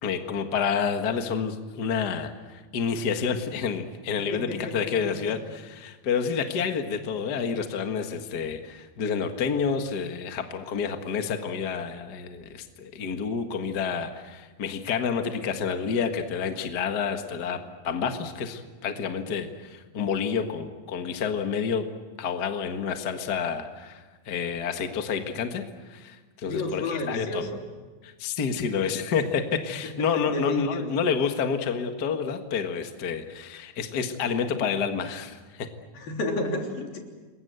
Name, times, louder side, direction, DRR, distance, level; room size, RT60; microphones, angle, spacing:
voice 1, 0.0-17.6 17.8-21.9 22.2-27.5 28.0-35.7, left 6 dB, 40° left, 6 dB, 1.5 m, -29 dB
voice 2, 4.2-5.1 26.5-27.6 30.0-30.9 35.9-37.0, left 2 dB, 80° left, 2 dB, 5.1 m, -31 dB
28.5 x 22.5 x 8.1 m, 1.3 s
omnidirectional pair, 4.1 m